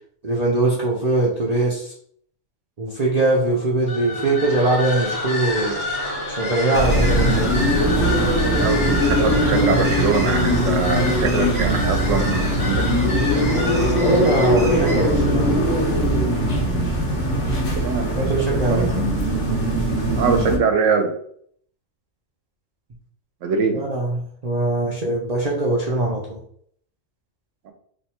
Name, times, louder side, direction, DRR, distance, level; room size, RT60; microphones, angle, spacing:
voice 1, 0.2-1.9 2.8-5.9 6.4-7.7 14.0-15.5 18.2-18.9 23.7-26.4, right 2 dB, 50° right, -4 dB, 0.5 m, -21 dB
Wind instrument woodwind instrument, 3.0-12.3, right 3 dB, 50° left, 0.9 m, -37 dB
sound 1, 3.9-15.3, left 2 dB, 20° left, 1.2 m, -29 dB
sound 2, 6.7-20.6, equal, 75° left, 1.2 m, -20 dB
voice 2, 8.6-13.3 17.8-18.2 18.5-19.2 20.2-21.1 23.4-23.8 27.7-27.8, right 5 dB, 80° right, 6 dB, 1.0 m, -23 dB
3.0 x 2.2 x 4.2 m, 0.64 s
omnidirectional pair, 1.3 m